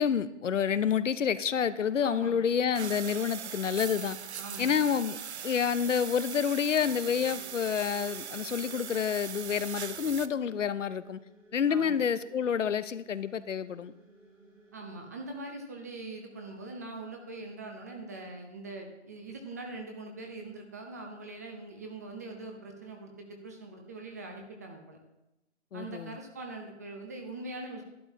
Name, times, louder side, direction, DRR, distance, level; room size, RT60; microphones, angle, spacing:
voice 1, 0.0-4.2 4.6-5.2 5.4-11.2 11.5-13.9 25.7-26.2, left 7 dB, 80° left, 14 dB, 0.7 m, -28 dB
voice 2, 2.0-2.4 4.4-4.7 11.7-12.0 14.7-25.0 25.7-27.8, right 2 dB, 15° right, 2 dB, 0.6 m, -42 dB
sound 1, 2.7-10.3, right 8 dB, 65° right, 0.6 m, -40 dB
sound 2, 6.8-15.1, right 2 dB, 80° right, 4.3 m, -58 dB
11.5 x 10.5 x 2.7 m, 0.92 s
hypercardioid pair, 150°, 36 cm